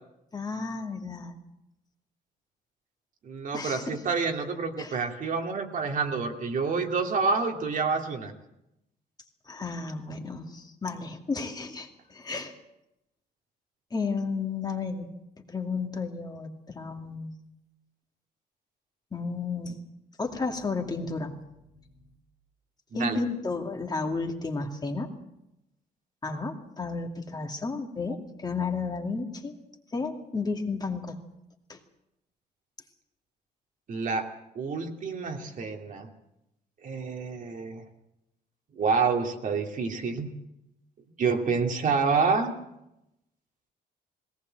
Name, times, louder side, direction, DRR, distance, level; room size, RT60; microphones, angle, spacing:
voice 1, 0.3-1.4 3.5-4.0 4.8-5.0 9.5-12.5 13.9-15.1 15.4-17.3 19.1-19.8 20.2-22.1 22.9-25.1 26.2-29.6 29.9-31.2 31.7-31.8, left 4 dB, 25° left, 3 dB, 2.4 m, -33 dB
voice 2, 3.2-8.3 22.9-23.2 33.9-34.3 34.5-36.1 36.8-37.8 38.7-40.3 41.2-42.6, right 4 dB, 50° right, 3 dB, 2.7 m, -28 dB
20.5 x 18.5 x 7.8 m, 0.86 s
cardioid pair, 125°, 17 cm